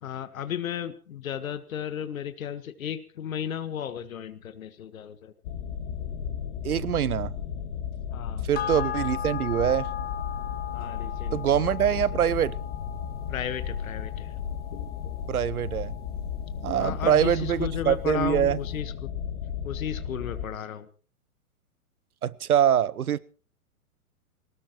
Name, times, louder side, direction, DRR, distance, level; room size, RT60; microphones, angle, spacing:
voice 1, 0.0-5.3 8.1-8.5 10.7-11.7 13.3-14.3 16.7-19.1 19.6-20.9, left 9 dB, 65° left, 11 dB, 1.5 m, -34 dB
sound 1, 5.4-20.5, left 8 dB, 45° left, 2.2 m, -34 dB
voice 2, 6.6-7.3 8.4-9.9 11.3-12.6 15.3-15.9 16.6-18.6 22.2-23.2, right 10 dB, 75° right, 21 dB, 0.9 m, -24 dB
sound 2, 8.5-17.3 17.7-17.8, left 11 dB, 20° left, 1.3 m, -38 dB
22.0 x 19.0 x 3.1 m, 0.40 s
figure-of-eight pair, 115°, 44 cm